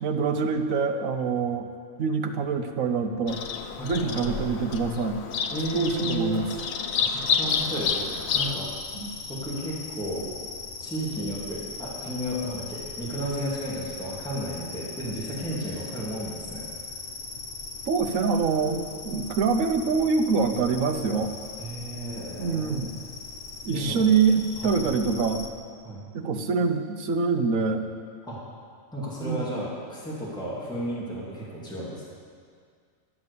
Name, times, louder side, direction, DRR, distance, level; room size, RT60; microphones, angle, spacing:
voice 1, 0.0-1.7 2.0-3.4 3.8-5.2 5.7-6.5 8.9-9.1 17.9-21.3 22.4-22.9 23.6-25.5 26.1-27.9 29.2-29.4, right 5 dB, 75° right, 6 dB, 1.2 m, -25 dB
Bird vocalization bird call bird song, 3.3-8.5, left 6 dB, 80° left, 1.1 m, -29 dB
voice 2, 3.8-4.6 5.5-6.4 7.1-8.1 8.3-8.7 9.3-10.3 10.8-16.6 21.6-22.9 23.7-24.1 24.5-25.0 25.8-26.0 28.2-28.4 28.9-32.0, equal, 5° left, -7 dB, 2.4 m, -33 dB
sound 1, 7.5-25.5, left 4 dB, 50° left, 0.9 m, -40 dB
12.0 x 7.6 x 6.7 m, 2.1 s
omnidirectional pair, 1.4 m